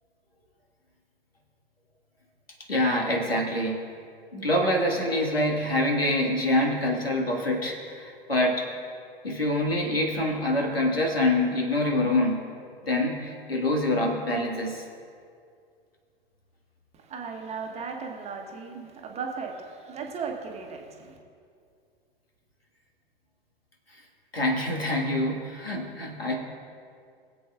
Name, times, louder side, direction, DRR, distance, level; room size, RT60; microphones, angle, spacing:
voice 1, 2.7-3.8 4.3-8.7 9.2-12.4 12.8-14.8 24.3-26.3, left 1 dB, 85° left, 0 dB, 1.9 m, -25 dB
voice 2, 16.9-21.2, right 5 dB, 20° right, 2 dB, 1.2 m, -36 dB
22.5 x 7.9 x 2.5 m, 2.3 s
figure-of-eight pair, 95°, 29 cm